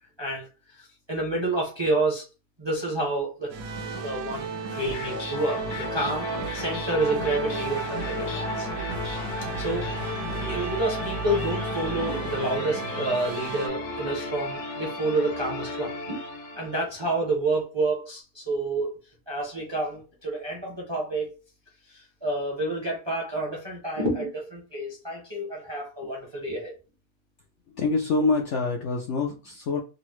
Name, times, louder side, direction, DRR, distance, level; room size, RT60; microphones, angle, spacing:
voice 1, 0.2-2.2 2.6-3.5 4.0-8.7 9.5-16.2 16.6-18.9 19.3-21.3 21.9-26.7, right 2 dB, 30° right, -1 dB, 0.5 m, -29 dB
sound 1, 3.5-13.7, right 5 dB, 75° right, 1.0 m, -36 dB
sound 2, 4.7-16.9, left 2 dB, 85° left, 1.3 m, -33 dB
voice 2, 27.7-29.8, left 3 dB, 70° left, 1 dB, 0.7 m, -25 dB
3.8 x 2.0 x 3.0 m, 0.31 s
omnidirectional pair, 1.6 m